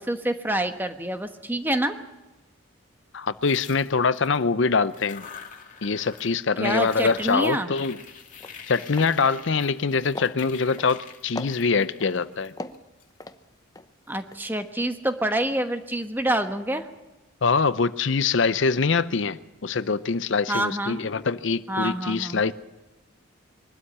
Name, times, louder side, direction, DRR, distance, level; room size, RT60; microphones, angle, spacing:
voice 1, 0.0-1.9 6.6-7.7 14.1-16.9 20.5-21.0 21.7-22.4, right 1 dB, 10° right, 7 dB, 1.2 m, -27 dB
voice 2, 3.1-5.3 5.8-8.0 8.7-12.5 17.4-22.5, left 4 dB, 60° left, 15 dB, 0.6 m, -24 dB
sound 1, 3.4-4.4 4.8-6.4 6.6-13.0, left 6 dB, 40° left, 2.3 m, -45 dB
sound 2, 7.8-8.0 8.3-8.6 8.9-9.1 9.5-9.9 10.1-11.0 11.4-12.1 12.6-13.9 14.2-14.4, left 2 dB, 20° left, 0.8 m, -38 dB
23.0 x 12.5 x 9.9 m, 1.1 s
head